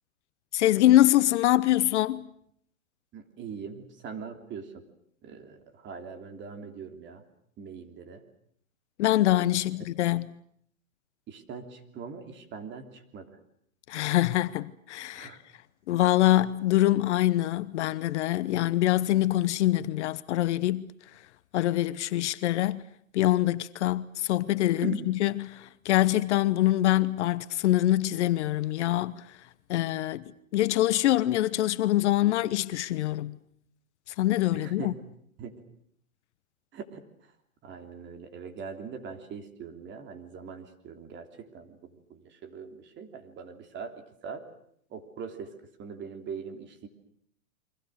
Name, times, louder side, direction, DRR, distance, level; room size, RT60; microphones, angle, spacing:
voice 1, 0.5-2.2 9.0-10.4 13.9-15.3 15.9-20.9 21.5-22.8 23.1-29.2 29.7-30.2 30.5-33.3 34.2-34.9, left 15 dB, 55° left, 1.0 m, -24 dB
voice 2, 3.1-4.7 5.2-7.2 7.6-8.2 11.3-13.3 15.1-15.4 24.8-25.1 34.5-34.9 35.4-35.6 36.7-37.0 37.6-44.5 44.9-46.9, right 6 dB, 25° right, 3.3 m, -41 dB
29.5 x 24.0 x 6.5 m
hypercardioid pair, 130°, 41 cm